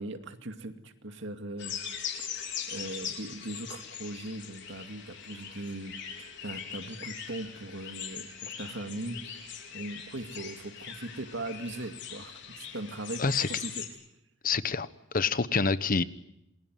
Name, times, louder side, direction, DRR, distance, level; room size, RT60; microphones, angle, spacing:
voice 1, 0.0-2.0 2.7-9.4 9.7-13.2 13.5-13.9, right 1 dB, 65° right, 7 dB, 2.3 m, -39 dB
sound 1, 1.6-13.9, left 8 dB, 65° left, 4.7 m, -41 dB
voice 2, 14.4-14.9 15.1-16.0, left 4 dB, 45° left, 14 dB, 1.1 m, -26 dB
28.0 x 21.5 x 9.4 m, 0.82 s
head